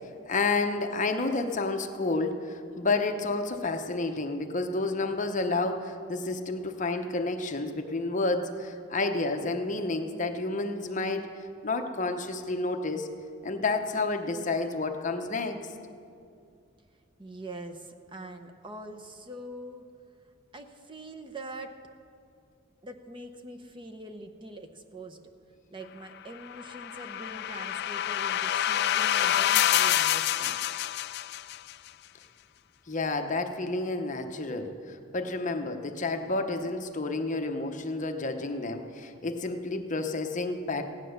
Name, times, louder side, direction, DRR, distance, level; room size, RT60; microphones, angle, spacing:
voice 1, 0.3-11.3 11.6-13.1 13.4-15.6 32.9-40.9, left 3 dB, 35° left, 6 dB, 0.8 m, -30 dB
voice 2, 17.2-19.9 20.5-21.8 22.8-25.2 25.7-30.6, right 1 dB, 25° right, 6 dB, 0.8 m, -43 dB
sound 1, 26.4-31.7, left 11 dB, 55° left, 0.3 m, -27 dB
16.0 x 10.0 x 6.5 m, 2.4 s
head